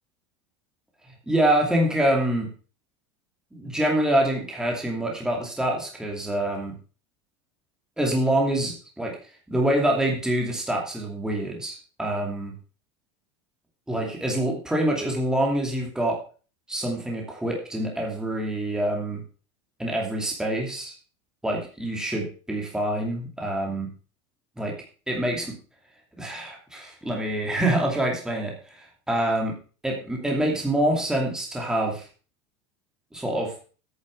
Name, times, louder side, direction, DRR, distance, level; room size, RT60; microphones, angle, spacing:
voice 1, 1.3-2.5 3.5-6.7 8.0-9.2 9.5-12.5 13.9-16.2 16.7-19.2 19.8-20.9 21.4-23.9 24.6-24.8 25.1-25.6 26.2-29.6 29.8-32.1 33.1-33.5, right 1 dB, 5° right, 0 dB, 2.6 m, -26 dB
9.3 x 7.2 x 6.4 m, 0.38 s
supercardioid pair, 135°, 14 cm